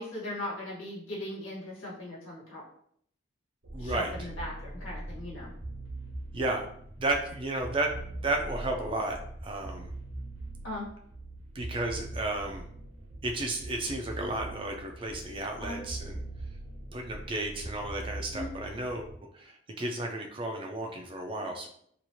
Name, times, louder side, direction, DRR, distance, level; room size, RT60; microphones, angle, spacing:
voice 1, 0.0-2.6 3.8-5.5 10.6-10.9 15.6-15.8 18.3-18.5, left 1 dB, 85° left, -5 dB, 1.3 m, -38 dB
sound 1, 3.6-19.1, right 2 dB, 90° right, 0.9 m, -42 dB
voice 2, 3.7-4.1 6.3-6.7 7.0-9.9 11.5-12.6 13.2-16.2 16.9-21.7, right 2 dB, 25° right, 3 dB, 0.3 m, -33 dB
3.0 x 2.4 x 2.7 m, 0.66 s
head